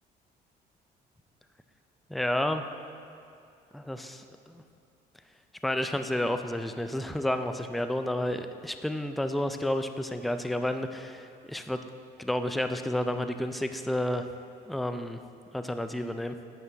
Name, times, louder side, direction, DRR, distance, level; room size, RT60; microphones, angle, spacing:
voice 1, 2.1-2.6 3.7-4.6 5.6-11.8 12.2-14.3 14.7-15.2 15.5-16.4, left 1 dB, ahead, 8 dB, 0.3 m, -31 dB
9.4 x 6.0 x 3.4 m, 2.5 s
cardioid pair, 110°, 17 cm